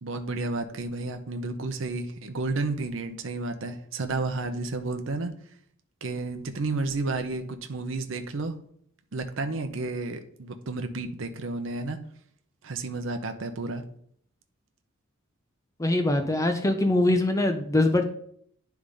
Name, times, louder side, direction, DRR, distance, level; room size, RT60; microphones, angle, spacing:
voice 1, 0.0-5.3 6.0-8.5 9.1-12.0 12.6-13.8, right 3 dB, 65° right, 7 dB, 0.7 m, -31 dB
voice 2, 15.8-18.0, left 2 dB, 15° left, 6 dB, 0.5 m, -23 dB
9.9 x 3.5 x 5.1 m, 0.65 s
head